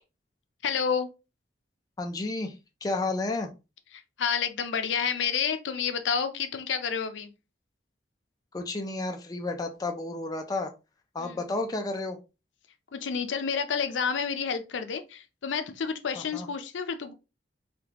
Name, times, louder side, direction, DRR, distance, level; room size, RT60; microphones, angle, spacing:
voice 1, 0.6-1.1 4.2-7.3 11.2-11.4 12.9-17.1, left 6 dB, 80° left, 0.5 m, -29 dB
voice 2, 2.0-2.5 2.8-3.5 8.5-10.7 11.1-12.2 16.2-16.5, left 2 dB, 20° left, 0.4 m, -31 dB
3.4 x 2.3 x 2.9 m
head